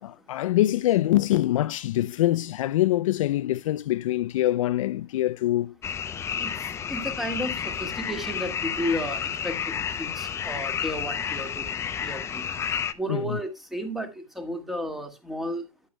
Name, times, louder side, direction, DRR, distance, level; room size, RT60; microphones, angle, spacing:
voice 1, 0.0-5.8 13.1-13.4, left 14 dB, 60° left, 0.5 m, -24 dB
sound 1, 5.8-12.9, left 8 dB, 15° left, 0.6 m, -31 dB
voice 2, 6.3-12.5 12.9-15.7, equal, ahead, 1.9 m, -33 dB
12.0 x 9.8 x 2.2 m
hypercardioid pair, 135°, 19 cm